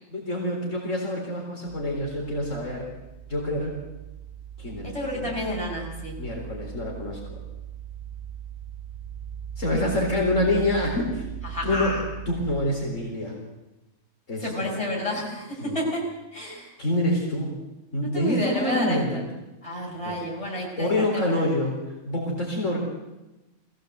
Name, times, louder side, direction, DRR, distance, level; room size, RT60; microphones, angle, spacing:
voice 1, 0.1-2.9 3.3-3.7 4.6-5.3 6.2-7.3 9.6-11.3 11.6-12.0 12.3-13.3 14.3-14.7 15.6-15.8 16.8-17.5 17.9-19.2 20.0-20.2 20.8-21.7 22.1-22.8, left 1 dB, 65° left, -1 dB, 4.3 m, -26 dB
sound 1, 1.7-12.6, right 9 dB, 85° right, 3.8 m, -39 dB
voice 2, 4.8-6.1 11.5-12.0 14.4-16.0 16.3-16.7 18.0-19.2 19.6-21.4, equal, 20° left, -3 dB, 6.4 m, -30 dB
21.0 x 16.0 x 8.0 m, 1.0 s
omnidirectional pair, 1.4 m